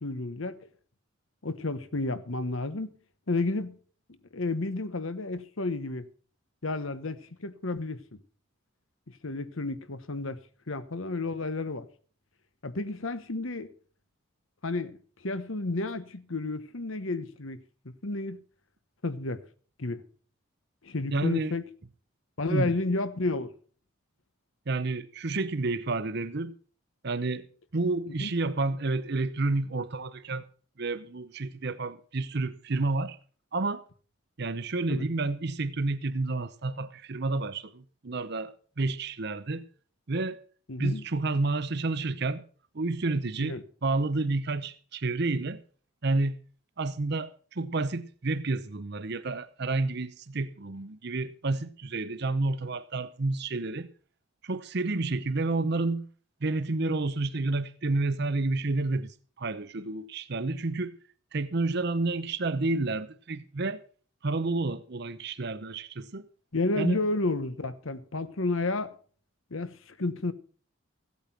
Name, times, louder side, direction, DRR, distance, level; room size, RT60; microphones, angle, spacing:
voice 1, 0.0-0.7 1.4-2.9 3.3-3.7 4.3-6.0 6.6-8.2 9.2-10.4 10.7-11.9 12.6-13.7 14.6-15.0 15.2-17.6 17.8-18.4 19.0-19.4 19.8-20.0 20.8-21.7 22.4-23.5 28.2-28.3 34.9-35.0 40.7-41.0 43.4-43.6 66.5-69.0 69.5-70.3, left 2 dB, 75° left, 1.2 m, -31 dB
voice 2, 21.1-21.5 22.5-22.7 24.7-26.5 27.0-27.5 27.7-30.5 30.8-33.2 33.5-33.8 34.4-39.6 40.1-40.4 40.8-42.4 42.7-45.6 46.0-46.4 46.8-53.9 54.4-56.1 56.4-59.1 59.4-61.0 61.3-63.8 64.2-66.3 66.8-67.0, right 3 dB, 50° right, 0.8 m, -30 dB
16.5 x 8.5 x 5.8 m
head